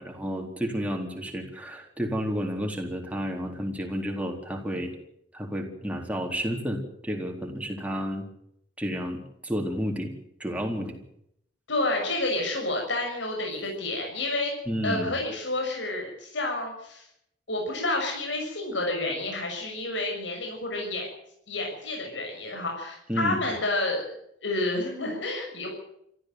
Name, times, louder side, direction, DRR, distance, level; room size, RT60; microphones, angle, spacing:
voice 1, 0.0-4.9 5.3-8.3 8.8-10.1 10.4-11.0 14.7-15.1 23.1-23.5, equal, 10° right, 2 dB, 4.1 m, -31 dB
voice 2, 11.7-14.5 14.8-17.0 17.5-21.1 21.5-24.0 24.4-25.7, left 2 dB, 80° left, 1 dB, 6.7 m, -29 dB
26.5 x 14.0 x 7.9 m, 0.74 s
head